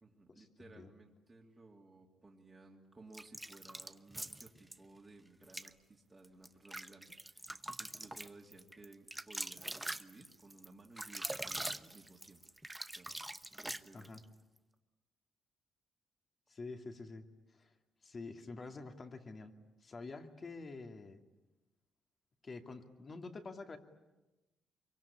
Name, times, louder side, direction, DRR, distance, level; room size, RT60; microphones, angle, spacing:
voice 1, 0.0-12.4 12.9-13.2 13.6-14.2, right 2 dB, 25° right, -1 dB, 2.6 m, -58 dB
sound 1, 3.1-4.8 5.4-5.7 6.2-14.2, right 1 dB, 10° right, 0.9 m, -43 dB
voice 2, 16.5-17.2 17.5-17.7 18.0-19.5 19.8-21.2 22.4-23.8, left 3 dB, 35° left, 6 dB, 2.6 m, -47 dB
25.0 x 23.5 x 10.0 m, 1.1 s
cardioid pair, 90°, 0 cm